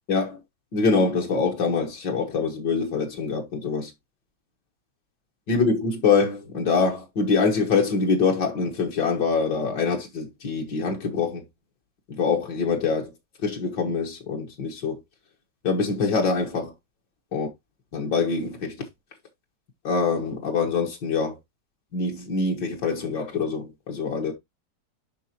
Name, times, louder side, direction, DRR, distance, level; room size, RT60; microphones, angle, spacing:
voice 1, 0.1-0.4 0.7-3.9 5.5-11.4 12.1-13.1 13.4-15.0 15.6-16.7 17.3-17.5 17.9-18.9 19.8-21.4 21.9-24.3, left 4 dB, 80° left, 2.0 m, -24 dB
11.0 x 3.8 x 2.9 m
omnidirectional pair, 1.8 m